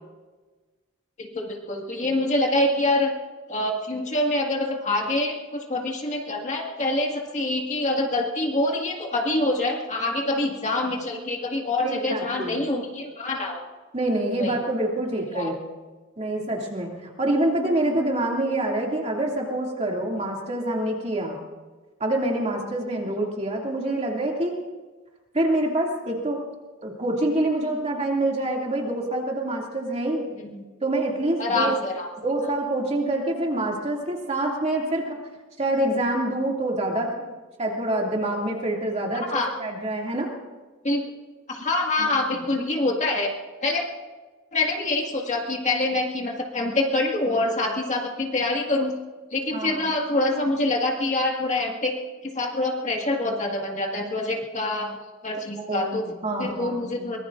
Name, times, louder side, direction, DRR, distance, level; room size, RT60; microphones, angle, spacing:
voice 1, 1.2-3.1 3.5-13.6 14.4-14.6 15.3-15.5 30.4-30.6 31.4-32.1 39.2-39.5 40.8-41.0 41.5-43.3 43.6-43.8 44.5-48.9 49.3-51.9 52.2-55.0 55.2-56.1 56.4-57.2, left 2 dB, 35° left, 0 dB, 1.8 m, -25 dB
voice 2, 11.8-12.6 13.9-15.6 16.2-21.4 22.0-24.6 25.3-26.4 26.8-30.2 30.8-31.7 32.2-35.2 35.6-37.2 37.6-40.3 42.0-42.1 49.5-49.8 55.7-57.2, right 1 dB, 30° right, -1 dB, 2.5 m, -26 dB
23.5 x 20.5 x 2.6 m, 1.3 s
head